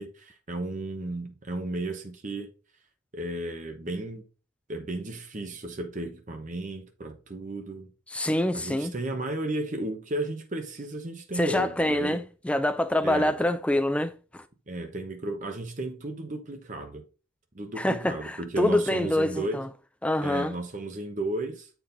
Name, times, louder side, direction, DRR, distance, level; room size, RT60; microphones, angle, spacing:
voice 1, 0.0-2.5 3.1-4.2 4.7-7.9 8.5-12.2 13.0-13.3 14.7-17.0 17.5-19.6 20.2-21.7, right 2 dB, 35° right, 0.9 m, -34 dB
voice 2, 8.1-8.9 11.4-14.4 17.8-19.7 20.0-20.5, left 1 dB, 5° left, 0.4 m, -26 dB
7.4 x 4.6 x 3.9 m
head